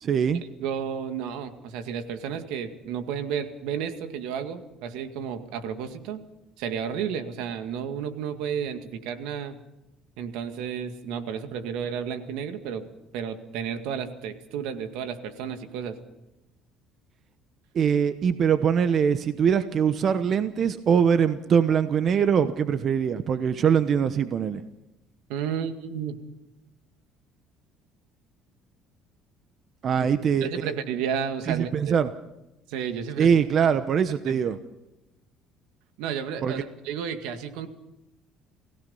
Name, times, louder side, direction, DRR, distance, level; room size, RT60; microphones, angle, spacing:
voice 1, 0.0-0.4 17.7-24.6 29.8-30.7 31.5-32.1 33.2-34.6 36.4-36.6, right 7 dB, 50° right, 11 dB, 1.0 m, -23 dB
voice 2, 0.6-6.2 6.6-9.6 10.2-12.9 13.1-16.0 25.3-26.2 30.0-30.1 30.4-31.9 32.7-33.4 34.3-34.4 36.0-37.7, right 7 dB, 85° right, 8 dB, 2.0 m, -32 dB
28.5 x 16.5 x 5.6 m, 0.94 s
cardioid pair, 100°, 0 cm